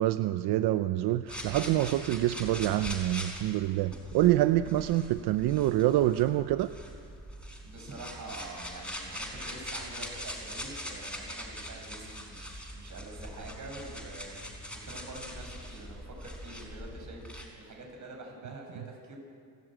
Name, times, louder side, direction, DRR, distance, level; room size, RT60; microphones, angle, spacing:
voice 1, 0.0-6.7, right 14 dB, 90° right, 12 dB, 0.7 m, -26 dB
sound 1, 1.3-17.5, equal, 5° left, 5.1 m, -42 dB
voice 2, 7.6-14.3 14.8-19.2, right 2 dB, 50° right, 1 dB, 6.9 m, -46 dB
29.0 x 12.5 x 9.0 m, 2.3 s
cardioid pair, 105°, 38 cm